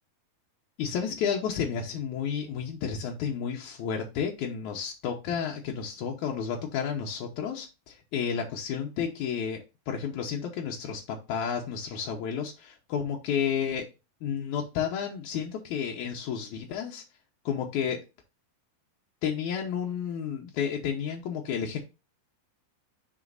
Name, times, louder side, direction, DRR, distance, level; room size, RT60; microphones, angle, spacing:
voice 1, 0.8-9.6 9.9-13.9 14.2-17.0 17.5-18.0 19.2-21.8, left 7 dB, 75° left, 0 dB, 1.9 m, -31 dB
11.0 x 4.0 x 2.5 m, 0.28 s
omnidirectional pair, 4.4 m